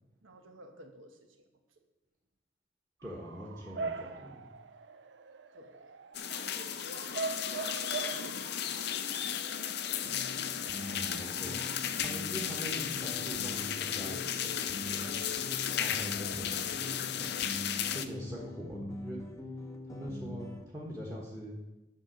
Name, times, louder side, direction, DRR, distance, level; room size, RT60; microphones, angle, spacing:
voice 1, 0.2-1.8 5.5-6.0 6.3-9.4, right 1 dB, 90° right, 4 dB, 1.3 m, -54 dB
voice 2, 3.0-4.4 10.9-11.6 12.0-15.1 15.8-17.3 17.9-19.3 19.8-21.5, equal, 20° right, -3 dB, 1.5 m, -43 dB
Bark / Motor vehicle (road) / Siren, 3.0-11.8, right 4 dB, 65° right, 0.5 m, -43 dB
sound 1, 6.1-18.1, left 9 dB, 55° left, 0.5 m, -35 dB
sound 2, 10.0-20.7, left 1 dB, 15° left, 0.9 m, -44 dB
9.7 x 4.4 x 6.5 m, 1.0 s
head